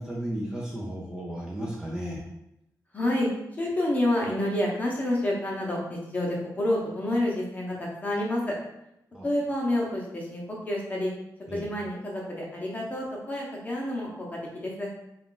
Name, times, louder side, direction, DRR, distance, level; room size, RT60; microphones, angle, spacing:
voice 1, 0.0-2.2 9.1-9.3 11.5-11.6, right 1 dB, 10° right, -4 dB, 0.5 m, -34 dB
voice 2, 2.9-3.3 3.5-8.6 9.2-11.1 11.5-14.9, left 1 dB, 20° left, -3 dB, 0.9 m, -29 dB
3.7 x 2.4 x 3.8 m, 0.84 s
wide cardioid pair, 150°, 7 cm